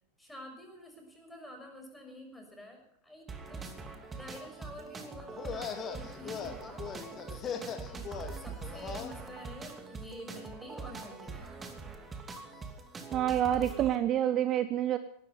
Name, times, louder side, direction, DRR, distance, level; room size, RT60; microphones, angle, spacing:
voice 1, 0.2-3.7 4.1-8.1 8.4-11.5, left 1 dB, 5° left, 2 dB, 6.0 m, -48 dB
sound 1, 3.3-14.0, right 4 dB, 15° right, 2.7 m, -43 dB
sound 2, 5.3-9.1, left 7 dB, 25° left, 2.2 m, -40 dB
voice 2, 13.1-15.0, right 11 dB, 30° right, 12 dB, 0.9 m, -28 dB
18.5 x 14.0 x 5.7 m, 0.69 s
figure-of-eight pair, 90°, 0 cm